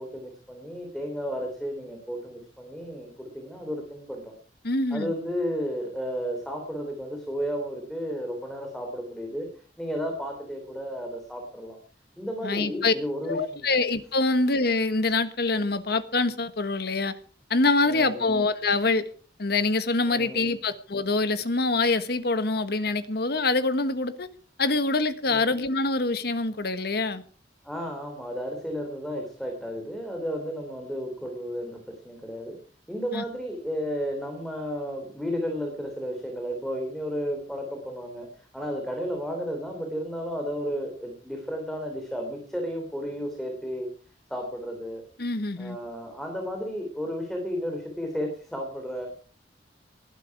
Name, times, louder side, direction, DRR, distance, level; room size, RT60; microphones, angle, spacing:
voice 1, 0.0-4.3 4.9-9.5 9.8-11.8 12.2-13.7 17.8-18.4 20.1-20.5 25.3-25.4 27.6-31.8 32.0-32.6 32.9-43.9 44.3-45.0 45.6-49.1, equal, ahead, 2 dB, 3.3 m, -33 dB
voice 2, 4.6-5.1 12.4-12.9 13.3-17.1 17.5-19.0 19.4-24.3 24.6-27.2 33.1-33.2 45.2-45.8, left 3 dB, 65° left, 12 dB, 1.4 m, -25 dB
19.5 x 11.5 x 4.9 m, 0.42 s
head